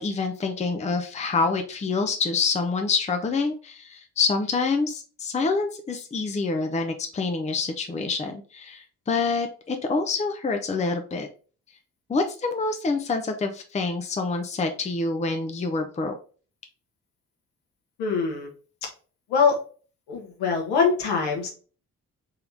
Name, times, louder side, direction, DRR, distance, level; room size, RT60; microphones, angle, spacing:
voice 1, 0.0-11.3 12.1-16.2, left 4 dB, 15° left, 5 dB, 0.7 m, -26 dB
voice 2, 18.0-18.5 19.3-19.6 20.1-21.5, left 5 dB, 65° left, 1 dB, 1.5 m, -23 dB
3.7 x 3.4 x 3.9 m, 0.39 s
figure-of-eight pair, 45°, 44 cm